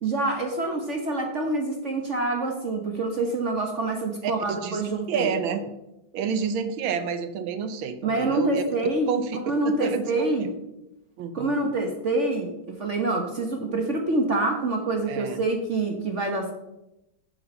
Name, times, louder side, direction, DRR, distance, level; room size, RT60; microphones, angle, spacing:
voice 1, 0.0-5.6 8.0-9.1 9.5-10.5 11.3-16.5, right 2 dB, 45° right, 2 dB, 1.1 m, -26 dB
voice 2, 4.2-5.7 6.1-8.6 9.1-9.4 9.6-10.5 11.2-11.5 15.1-15.4, right 6 dB, 85° right, 9 dB, 1.6 m, -29 dB
7.6 x 6.8 x 5.5 m, 0.90 s
omnidirectional pair, 2.2 m